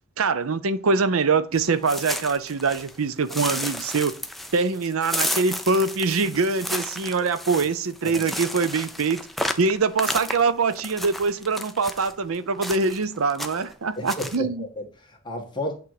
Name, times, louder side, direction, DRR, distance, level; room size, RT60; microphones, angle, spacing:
voice 1, 0.2-4.1 4.5-9.2 9.6-14.6, right 4 dB, 85° right, 0.7 m, -23 dB
sound 1, 1.6-3.0 3.3-12.1 12.6-13.0 13.3-13.7 14.1-14.4, left 1 dB, ahead, 0.5 m, -32 dB
voice 2, 14.0-15.7, left 1 dB, 20° left, 1.6 m, -32 dB
8.5 x 3.8 x 4.8 m
head